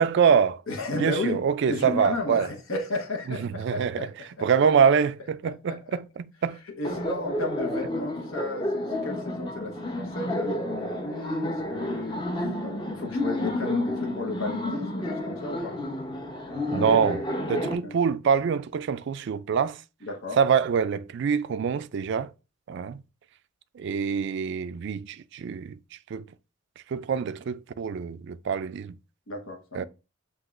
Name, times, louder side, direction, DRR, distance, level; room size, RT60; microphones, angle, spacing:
voice 1, 0.0-0.6 1.0-2.5 3.3-4.1 4.4-6.6 16.7-19.8 20.4-22.3 22.7-23.0 23.8-25.8 26.1-26.2 26.9-28.9 29.7-29.8, right 6 dB, 55° right, 0.3 m, -25 dB
voice 2, 0.7-1.4 1.7-4.5 5.4-5.8 6.8-12.2 12.9-15.8 17.8-17.9 20.0-20.4 29.3-29.9, left 2 dB, 80° left, 1.0 m, -33 dB
Laughter, 6.8-17.7, left 1 dB, 20° left, 0.7 m, -30 dB
7.6 x 2.9 x 2.4 m
head